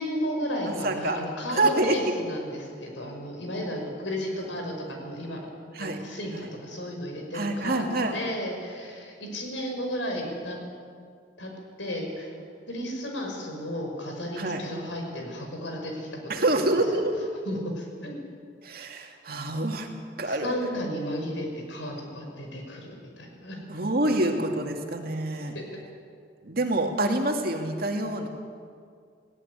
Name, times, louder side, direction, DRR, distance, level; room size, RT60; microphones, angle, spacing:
voice 1, 0.0-5.5 5.8-10.6 11.4-11.5 11.8-12.3 12.7-16.6 16.9-17.0 17.5-18.2 20.2-23.6 24.0-24.2 25.5-25.6, equal, 85° left, 2 dB, 5.6 m, -33 dB
voice 2, 0.7-1.2 1.6-2.0 5.7-6.0 6.3-6.5 7.3-8.2 14.4-14.6 16.3-17.3 18.6-19.9 20.2-20.5 23.7-25.5 26.4-28.3, right 2 dB, 55° right, 3 dB, 2.4 m, -26 dB
18.5 x 17.0 x 9.9 m, 2.2 s
head